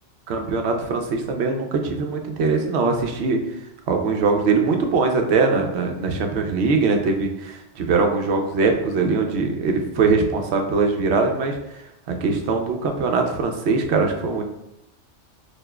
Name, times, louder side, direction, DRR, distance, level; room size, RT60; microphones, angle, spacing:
voice 1, 0.3-3.4 3.9-11.6 12.1-14.4, right 4 dB, 70° right, 4 dB, 0.9 m, -21 dB
6.4 x 2.4 x 2.3 m, 0.87 s
omnidirectional pair, 1.2 m